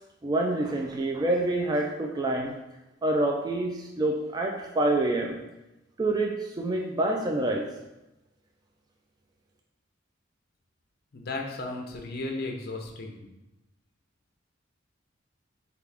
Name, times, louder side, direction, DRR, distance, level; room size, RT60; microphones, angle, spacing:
voice 1, 0.2-2.6 3.0-5.4 6.0-7.7, right 2 dB, 20° right, 1 dB, 0.3 m, -27 dB
voice 2, 11.1-13.2, left 2 dB, 50° left, 2 dB, 0.6 m, -35 dB
4.6 x 2.4 x 3.4 m, 0.95 s
head